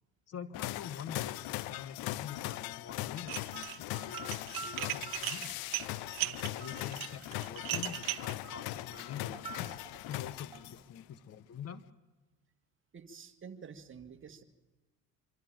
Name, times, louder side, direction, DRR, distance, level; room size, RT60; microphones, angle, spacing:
voice 1, 0.3-5.6 6.2-9.8 10.1-11.8, left 8 dB, 40° left, 16 dB, 1.1 m, -46 dB
sound 1, 0.5-11.0, left 17 dB, 75° left, 0.6 m, -40 dB
Dishes pots and pans, 3.2-3.8 4.1-8.3, right 18 dB, 65° right, 1.0 m, -37 dB
sound 2, 3.5-10.8, right 6 dB, 15° right, 5.2 m, -50 dB
voice 2, 12.9-14.4, right 6 dB, 35° right, 8 dB, 1.8 m, -49 dB
25.5 x 12.5 x 8.9 m, 1.2 s
supercardioid pair, 95°, 37 cm